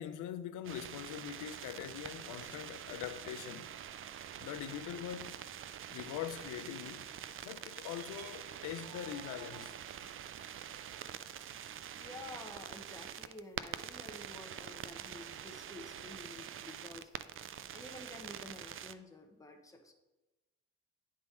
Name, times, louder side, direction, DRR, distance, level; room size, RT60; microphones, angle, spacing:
voice 1, 0.0-3.7 4.4-5.4 5.9-7.1 7.4-10.0, left 10 dB, 90° left, 0.6 m, -43 dB
sound 1, 0.6-18.9, right 10 dB, 45° right, 0.4 m, -46 dB
sound 2, 7.7-9.7, right 6 dB, 85° right, 0.9 m, -54 dB
voice 2, 11.9-17.1 17.7-19.9, left 2 dB, 10° left, 1.0 m, -51 dB
10.5 x 3.7 x 4.2 m
cardioid pair, 90°, 30 cm